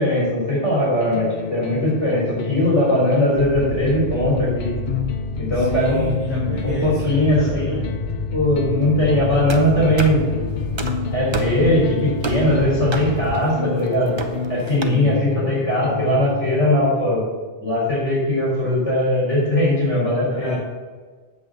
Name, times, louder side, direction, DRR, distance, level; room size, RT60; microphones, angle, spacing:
voice 1, 0.0-4.7 5.4-6.1 6.6-7.8 8.3-10.2 11.1-14.2 14.5-17.2 17.6-20.6, left 1 dB, 70° left, -6 dB, 3.7 m, -20 dB
sound 1, 1.0-16.9, left 6 dB, 55° left, 0.5 m, -30 dB
sound 2, 3.3-13.3, left 2 dB, 65° right, 1.8 m, -29 dB
voice 2, 5.5-7.9 14.6-15.2 20.3-20.6, left 1 dB, 30° left, -7 dB, 2.4 m, -29 dB
sound 3, 9.5-14.8, right 3 dB, 30° right, 0.6 m, -32 dB
8.0 x 5.5 x 7.4 m, 1.4 s
omnidirectional pair, 1.2 m